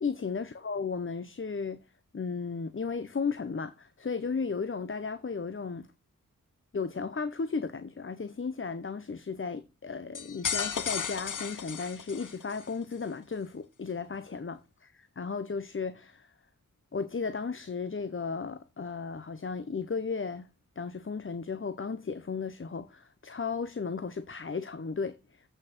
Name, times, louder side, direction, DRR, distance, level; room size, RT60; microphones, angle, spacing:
voice 1, 0.0-1.8 2.1-5.9 6.7-16.3 16.9-20.5 20.8-25.5, left 5 dB, 40° left, 0.7 m, -35 dB
sound 1, 10.1-12.7, left 6 dB, 65° left, 0.9 m, -34 dB
8.3 x 6.3 x 4.4 m
wide cardioid pair, 65°, 33 cm